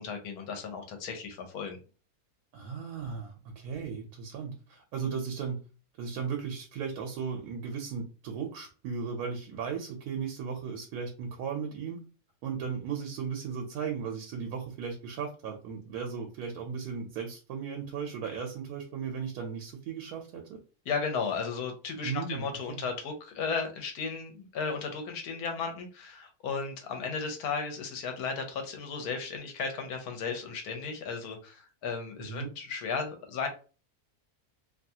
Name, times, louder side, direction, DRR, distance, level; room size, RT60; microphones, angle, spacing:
voice 1, 0.0-1.8 20.9-33.5, left 5 dB, 80° left, 5 dB, 1.2 m, -35 dB
voice 2, 2.5-5.6 6.0-12.0 12.4-20.6 22.0-22.9 32.2-32.5, right 6 dB, 90° right, 3 dB, 1.1 m, -36 dB
2.8 x 2.3 x 2.7 m, 0.36 s
omnidirectional pair, 1.6 m